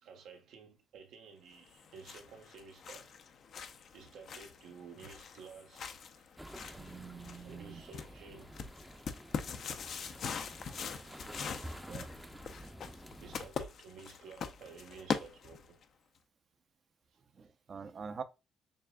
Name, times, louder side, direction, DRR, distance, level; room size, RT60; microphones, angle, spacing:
voice 1, 0.0-3.1 3.9-6.3 7.3-8.5 11.5-11.7 13.2-15.8, right 5 dB, 85° right, 1.1 m, -53 dB
sound 1, 1.7-15.8, left 6 dB, 60° left, 0.5 m, -43 dB
sound 2, 6.4-13.5, right 1 dB, 5° right, 0.6 m, -50 dB
voice 2, 6.8-7.8 10.7-11.0 11.9-12.1 17.4-18.2, right 5 dB, 45° right, 0.6 m, -45 dB
6.9 x 2.4 x 2.2 m
cardioid pair, 90°, 0 cm